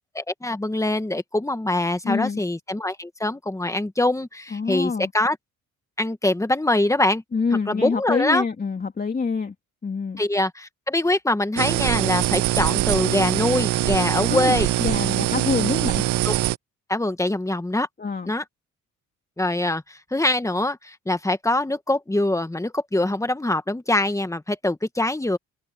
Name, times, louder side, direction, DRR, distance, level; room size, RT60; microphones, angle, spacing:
voice 1, 0.0-5.4 6.0-7.2 7.7-8.4 10.2-14.7 16.2-16.3 16.9-17.9 18.3-18.4 19.4-25.4, left 1 dB, 10° left, 1.7 m, -24 dB
voice 2, 2.0-2.4 4.5-5.1 7.3-9.5 9.8-10.2 14.3-16.0 18.0-18.3, left 4 dB, 30° left, 2.5 m, -26 dB
sound 1, 11.6-16.6, right 16 dB, 80° right, 0.6 m, -23 dB
cardioid pair, 90°, 30 cm